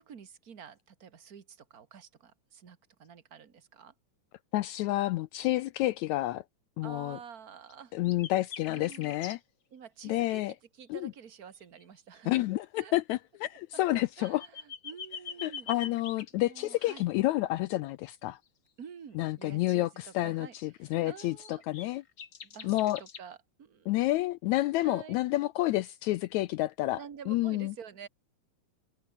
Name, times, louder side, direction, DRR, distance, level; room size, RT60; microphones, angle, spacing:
voice 1, 0.0-3.9 6.8-7.9 8.7-9.1 9.7-10.4 10.7-12.4 12.8-12.9 13.9-15.7 16.3-17.0 18.8-21.6 22.4-23.9 24.8-25.1 26.9-28.1, right 7 dB, 40° right, 1.4 m, -49 dB
voice 2, 4.5-6.4 6.8-7.2 7.9-9.4 10.0-10.5 10.9-11.1 12.3-14.4 15.4-18.4 19.2-22.0 22.6-23.0 23.9-27.7, left 17 dB, 80° left, 1.7 m, -29 dB
sound 1, 7.7-7.8 8.0-9.4 11.6-11.8 12.2-12.3 14.0-16.3 21.2-23.2, left 7 dB, 40° left, 2.3 m, -44 dB
omnidirectional pair, 3.7 m